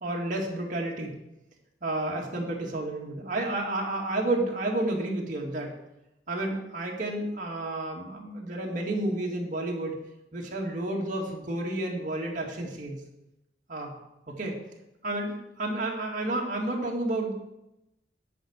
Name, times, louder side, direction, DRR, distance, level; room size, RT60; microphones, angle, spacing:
voice 1, 0.0-1.2 1.8-5.7 6.3-10.0 10.3-13.0 13.7-13.9 14.3-14.6 15.0-17.3, right 2 dB, 45° right, -2 dB, 1.9 m, -31 dB
10.0 x 4.8 x 8.0 m, 0.89 s
head